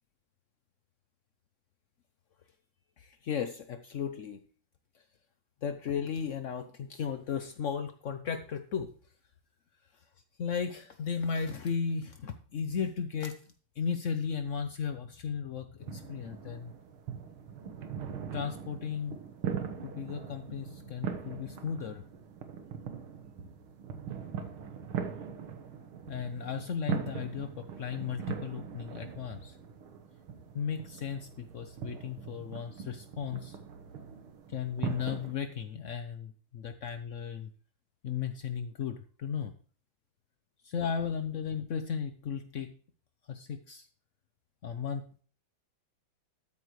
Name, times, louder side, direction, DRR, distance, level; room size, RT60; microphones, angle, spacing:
voice 1, 3.0-4.4 5.6-8.9 10.4-13.4 13.8-16.7 18.3-19.2 19.8-22.0 26.1-29.5 30.5-33.6 34.5-37.5 38.0-39.5 40.6-42.7 43.3-43.9 44.6-45.2, left 7 dB, 75° left, 8 dB, 0.7 m, -35 dB
sound 1, 15.8-35.3, right 7 dB, 80° right, 2.1 m, -41 dB
13.0 x 8.4 x 3.2 m, 0.42 s
omnidirectional pair, 2.3 m